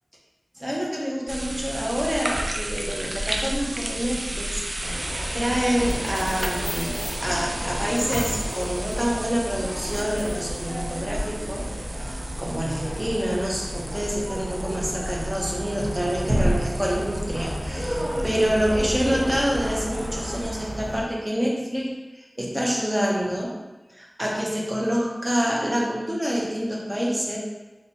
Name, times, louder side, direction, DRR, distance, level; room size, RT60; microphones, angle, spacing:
voice 1, 0.6-4.6 4.9-23.6 23.9-27.4, equal, 20° right, -3 dB, 0.7 m, -27 dB
sound 1, 1.3-20.5, right 1 dB, 65° right, 0.4 m, -33 dB
sound 2, 4.8-21.0, equal, 40° right, 1.1 m, -32 dB
sound 3, 5.9-10.6, left 1 dB, 25° left, 0.3 m, -37 dB
2.9 x 2.7 x 4.1 m, 1.1 s
wide cardioid pair, 50°, 0 cm